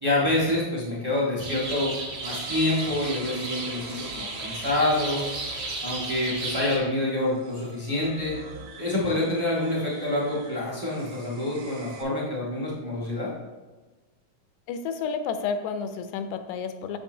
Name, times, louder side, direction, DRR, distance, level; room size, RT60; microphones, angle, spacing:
voice 1, 0.0-1.9 2.2-5.2 5.8-8.3 8.8-13.3, left 1 dB, 25° right, -6 dB, 0.4 m, -27 dB
sound 1, 1.4-6.8, right 2 dB, 55° right, 1.3 m, -34 dB
sound 2, 2.2-12.0, right 3 dB, 80° right, 1.2 m, -45 dB
voice 2, 14.7-17.0, left 6 dB, 80° left, 9 dB, 1.9 m, -30 dB
7.2 x 6.9 x 2.7 m, 1.2 s
omnidirectional pair, 3.4 m